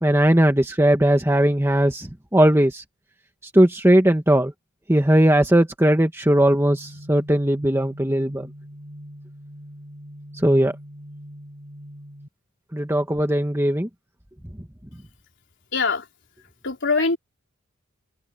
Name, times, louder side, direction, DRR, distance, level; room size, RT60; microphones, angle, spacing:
voice 1, 0.0-2.8 3.5-4.5 4.9-8.5 10.4-10.7 12.7-13.9, right 1 dB, 10° right, 1.4 m, -18 dB
sound 1, 6.7-12.3, equal, 45° right, 7.2 m, -42 dB
voice 2, 15.7-16.0 16.6-17.2, left 4 dB, 55° left, 4.3 m, -22 dB
open air
head